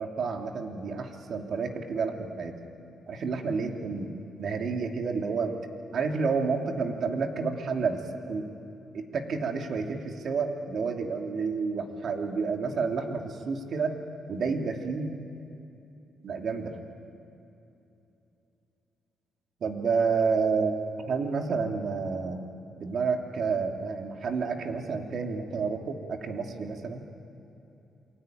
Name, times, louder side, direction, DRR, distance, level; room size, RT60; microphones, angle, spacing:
voice 1, 0.0-2.5 3.1-4.1 4.4-5.5 5.9-8.5 8.9-13.9 14.3-15.1 16.2-16.7 19.6-20.7 21.1-22.4 22.8-27.0, right 5 dB, 60° right, 3 dB, 2.9 m, -30 dB
28.0 x 22.5 x 9.4 m, 2.9 s
cardioid pair, 105°, 0 cm